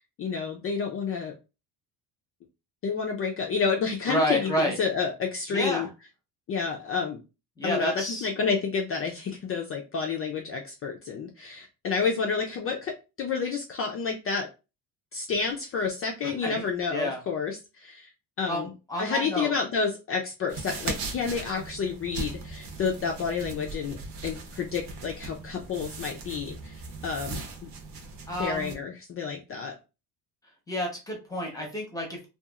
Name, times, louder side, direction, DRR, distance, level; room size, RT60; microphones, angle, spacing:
voice 1, 0.0-1.3 2.8-5.9 6.5-7.2 7.6-12.9 13.2-14.5 15.1-18.1 18.4-18.7 19.0-24.0 24.2-27.7 28.4-29.8, left 5 dB, 35° left, 2 dB, 0.4 m, -30 dB
voice 2, 4.1-4.8 5.5-5.9 7.6-8.3 16.2-16.6 16.9-17.2 18.5-19.5 28.3-28.7 30.7-32.3, equal, 10° left, 0 dB, 0.7 m, -29 dB
Tying Shoelaces, 20.5-28.8, right 3 dB, 70° right, 0.9 m, -39 dB
2.8 x 2.3 x 2.3 m, 0.28 s
cardioid pair, 150°, 43 cm